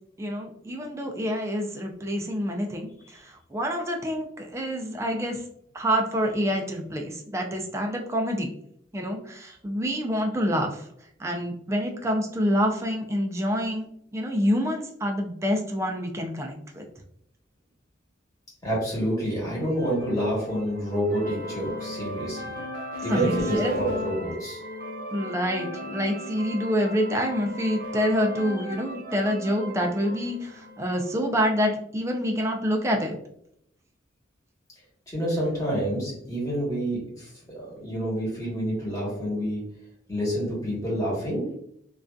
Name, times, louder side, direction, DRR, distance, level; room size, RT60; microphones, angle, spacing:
voice 1, 0.2-5.4 5.7-8.5 8.9-10.9 11.2-16.8 23.1-23.7 25.1-33.1, equal, 15° right, 2 dB, 0.3 m, -27 dB
voice 2, 18.6-22.6 23.0-24.6 35.1-39.7 40.1-41.5, right 1 dB, 20° left, -6 dB, 1.1 m, -28 dB
sound 1, 19.5-31.3, left 1 dB, 50° right, 0.7 m, -36 dB
2.5 x 2.3 x 2.2 m, 0.70 s
head